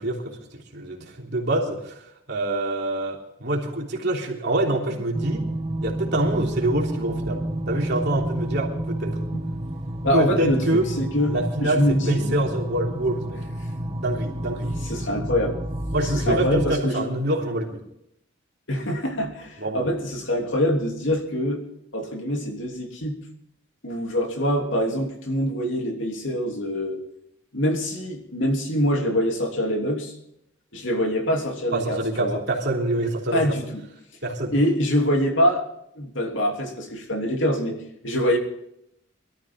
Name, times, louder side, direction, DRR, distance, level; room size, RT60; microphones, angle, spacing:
voice 1, 0.0-5.5 5.8-9.2 10.1-10.9 11.3-13.4 13.9-14.8 15.9-17.8 19.6-19.9 31.7-33.6 34.2-34.5, right 1 dB, 55° right, 0 dB, 3.4 m, -26 dB
sound 1, 5.1-16.7, right 1 dB, 25° right, 1.1 m, -30 dB
voice 2, 10.0-12.3 13.8-14.0 14.9-15.6 16.0-17.1 18.7-21.6 21.9-23.2 23.8-27.0 27.5-30.1 30.7-32.4 33.3-33.8 34.5-35.6 35.9-38.4, equal, 65° left, 2 dB, 3.0 m, -24 dB
23.0 x 13.5 x 3.7 m, 0.76 s
head